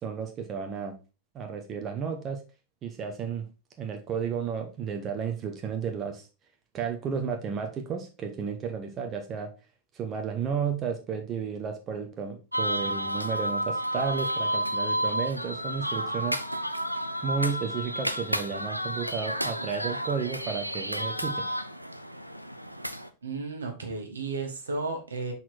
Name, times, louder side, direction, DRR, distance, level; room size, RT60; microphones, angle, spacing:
voice 1, 0.0-1.0 1.3-2.4 2.8-3.5 3.8-6.3 6.7-9.5 9.9-16.6 17.2-21.4, right 6 dB, 30° right, 4 dB, 0.9 m, -33 dB
sound 1, 12.5-23.1, equal, 90° right, 0.4 m, -31 dB
voice 2, 23.2-25.3, right 3 dB, 70° right, 4 dB, 1.4 m, -33 dB
6.0 x 4.1 x 4.3 m, 0.31 s
figure-of-eight pair, 90°, 0 cm